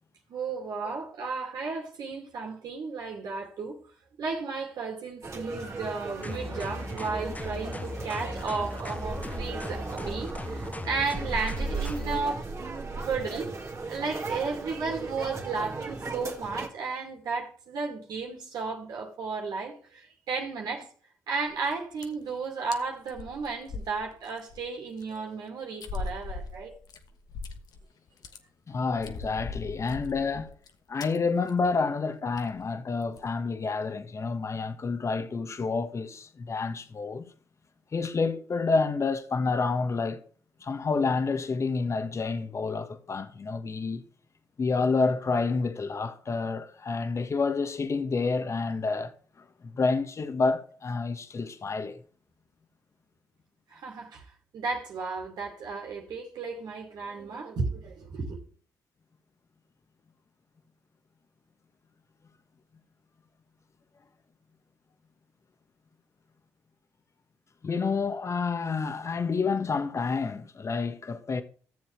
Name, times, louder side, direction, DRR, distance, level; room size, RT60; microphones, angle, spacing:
voice 1, 0.3-3.8 4.2-12.4 13.0-13.6 13.9-20.9 21.3-26.8 53.7-54.2 54.5-58.4, right 4 dB, 70° right, 2.4 m, -34 dB
sound 1, 5.2-16.7, right 3 dB, 40° right, 2.3 m, -36 dB
sound 2, 6.2-12.2, left 2 dB, 20° left, 0.9 m, -38 dB
sound 3, 21.5-21.7 22.0-22.3 22.7-22.8 23.1-24.6 25.0-25.1 25.8-27.8 28.1-28.4 28.9-30.7 31.0-31.2 31.5-31.7 31.9-32.0 32.4-32.6 33.0-33.3, left 3 dB, 65° left, 1.2 m, -39 dB
voice 2, 28.7-30.5 30.9-37.2 37.9-40.2 40.6-44.0 44.6-49.1 49.4-52.0 67.6-71.4, left 4 dB, 45° left, 1.3 m, -29 dB
14.0 x 7.2 x 3.3 m
supercardioid pair, 60°, 7 cm